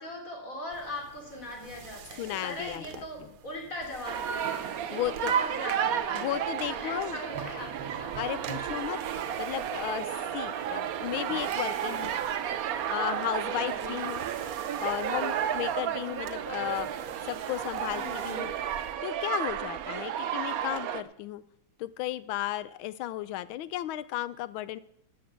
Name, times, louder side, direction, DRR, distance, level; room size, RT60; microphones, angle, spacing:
voice 1, 0.0-8.1 13.5-13.9 17.9-18.5, left 1 dB, 40° left, 1 dB, 3.8 m, -40 dB
sound 1, 0.7-18.9, right 7 dB, 80° right, 1.9 m, -48 dB
voice 2, 2.2-3.3 4.9-5.4 6.1-7.2 8.1-9.0 9.4-12.1 12.5-14.3 14.8-17.0 17.3-21.4 21.8-24.8, left 14 dB, 75° left, 16 dB, 1.5 m, -34 dB
sound 2, 4.1-21.0, right 9 dB, 65° right, 0.9 m, -32 dB
13.0 x 8.7 x 8.1 m, 0.72 s
omnidirectional pair, 2.3 m